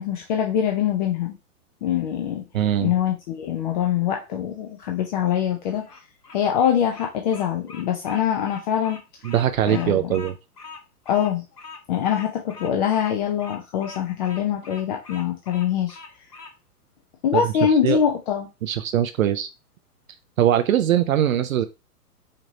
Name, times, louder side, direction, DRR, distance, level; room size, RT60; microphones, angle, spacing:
voice 1, 0.0-1.4 1.8-2.4 2.8-6.0 6.3-9.0 9.7-10.1 11.1-11.4 11.9-16.0 17.2-18.5, left 9 dB, 30° left, 2 dB, 0.5 m, -23 dB
voice 2, 2.5-2.9 9.2-10.3 17.3-17.4 17.8-18.0 18.6-19.5 20.4-21.6, right 11 dB, 60° right, 9 dB, 0.5 m, -21 dB
Bird vocalization bird call bird song, 5.7-16.5, left 4 dB, 85° left, 1.1 m, -43 dB
5.1 x 2.8 x 2.7 m, 0.27 s
figure-of-eight pair, 110°, 46 cm